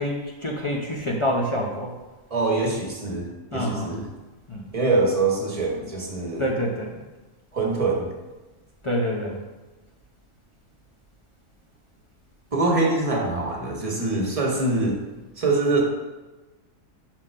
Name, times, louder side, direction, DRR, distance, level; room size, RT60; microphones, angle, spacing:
voice 1, 0.0-2.0 3.5-4.0 4.5-4.6 6.4-7.0 8.8-9.4 14.6-14.9, equal, 40° left, -2 dB, 0.4 m, -27 dB
voice 2, 2.3-4.0 4.7-6.5 7.5-8.1 12.5-15.0 15.4-15.8, right 3 dB, 30° right, -1 dB, 1.1 m, -24 dB
4.6 x 3.8 x 5.4 m, 1.2 s
omnidirectional pair, 1.4 m